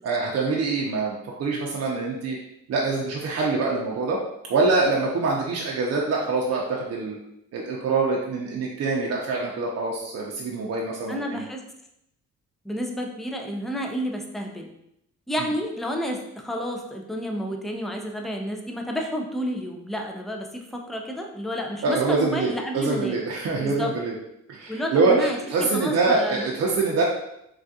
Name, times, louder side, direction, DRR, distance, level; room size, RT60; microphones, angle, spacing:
voice 1, 0.0-2.4 2.7-4.2 4.5-7.2 7.5-11.5 15.4-15.5 21.8-24.1 24.5-27.0, right 3 dB, 55° right, -3 dB, 0.6 m, -25 dB
voice 2, 11.1-11.6 12.6-14.7 15.3-23.2 23.6-23.9 24.7-26.5, equal, ahead, 2 dB, 0.4 m, -30 dB
3.4 x 2.3 x 2.7 m, 0.80 s
cardioid pair, 90°, 30 cm